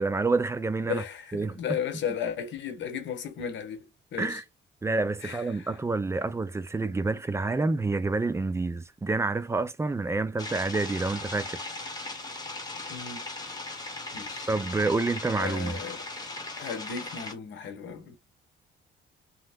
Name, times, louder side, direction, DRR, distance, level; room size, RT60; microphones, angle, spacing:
voice 1, 0.0-1.0 1.3-1.8 4.2-4.4 4.8-11.7 14.5-15.8, right 3 dB, 15° right, 0.3 m, -28 dB
voice 2, 0.9-3.8 4.1-4.4 5.2-5.7 12.9-13.3 14.1-14.5 15.4-16.0 16.6-18.2, left 7 dB, 70° left, 0.9 m, -35 dB
sound 1, 10.4-17.3, left 2 dB, 20° left, 1.0 m, -38 dB
2.7 x 2.1 x 3.5 m
cardioid pair, 90°, 20 cm